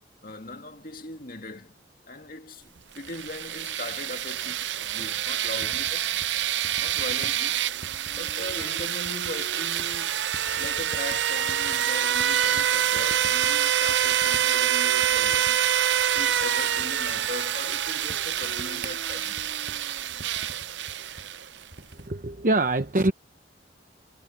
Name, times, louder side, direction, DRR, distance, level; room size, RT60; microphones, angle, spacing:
voice 1, 0.2-1.7 2.0-6.1 6.8-7.6 8.1-10.1 10.6-15.6 16.1-19.4, left 2 dB, 50° left, 2.2 m, -39 dB
sound 1, 3.0-21.6, right 10 dB, 85° right, 0.7 m, -26 dB
sound 2, 4.3-22.2, right 2 dB, 65° right, 6.1 m, -48 dB
voice 2, 21.9-23.1, right 2 dB, 45° right, 0.9 m, -24 dB
head